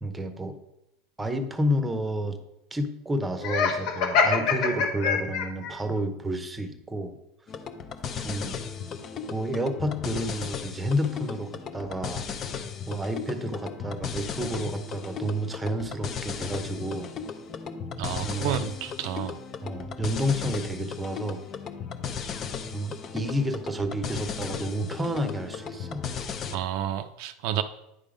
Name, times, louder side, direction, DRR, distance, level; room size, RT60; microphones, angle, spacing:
voice 1, 0.0-0.6 1.2-2.4 2.7-7.2 8.2-8.6 9.3-12.2 12.9-17.1 18.2-18.7 19.6-21.4 22.7-26.1, equal, 10° right, 8 dB, 0.8 m, -30 dB
Laughter, 3.4-5.7, left 5 dB, 60° left, 1.2 m, -24 dB
sound 1, 7.5-26.6, left 6 dB, 35° left, 0.6 m, -36 dB
voice 2, 18.0-19.4 26.5-27.6, right 10 dB, 65° right, 9 dB, 0.4 m, -30 dB
9.6 x 3.7 x 5.0 m, 0.86 s
supercardioid pair, 125°, 0 cm